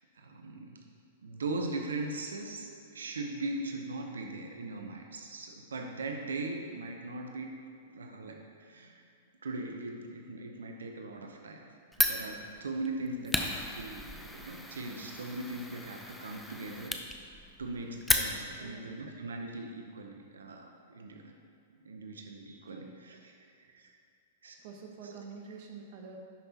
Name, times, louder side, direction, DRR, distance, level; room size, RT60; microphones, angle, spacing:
voice 1, 0.1-0.8 1.2-7.5 7.8-9.0 9.4-11.6 12.0-16.9 17.6-21.3 21.8-23.3 23.6-24.0 24.4-24.6 25.0-25.1 25.5-25.6, right 2 dB, 75° right, 2 dB, 0.6 m, -40 dB
Fire, 11.9-18.7, left 1 dB, 5° left, 0.5 m, -35 dB
voice 2, 18.6-18.9 22.7-22.9 24.6-26.2, right 5 dB, 50° right, 2 dB, 1.0 m, -47 dB
10.5 x 5.4 x 2.8 m, 2.4 s
figure-of-eight pair, 105°, 0 cm